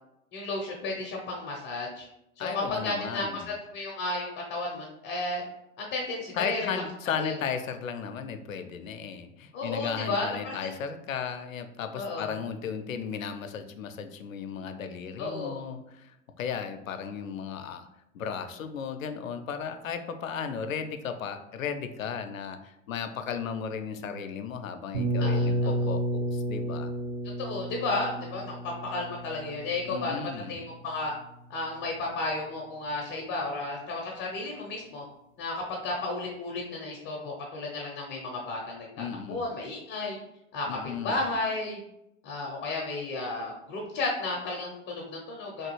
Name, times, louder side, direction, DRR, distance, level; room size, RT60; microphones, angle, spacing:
voice 1, 0.3-2.1 2.4-5.4 5.8-6.8 7.2-7.3 9.5-10.7 11.9-12.3 15.2-15.6 25.2-25.7 27.4-30.2 30.5-31.1 31.5-35.0 35.4-40.2 40.5-40.8 41.0-41.8 42.2-45.7, left 2 dB, 30° left, -1 dB, 0.6 m, -33 dB
voice 2, 2.4-3.5 6.3-17.9 18.1-26.9 29.9-30.6 39.0-39.4 40.7-41.2, left 7 dB, 80° left, 8 dB, 0.5 m, -35 dB
sound 1, 24.9-30.7, right 1 dB, 50° right, 1.3 m, -31 dB
3.2 x 2.3 x 3.0 m, 0.85 s
figure-of-eight pair, 100°, 40 cm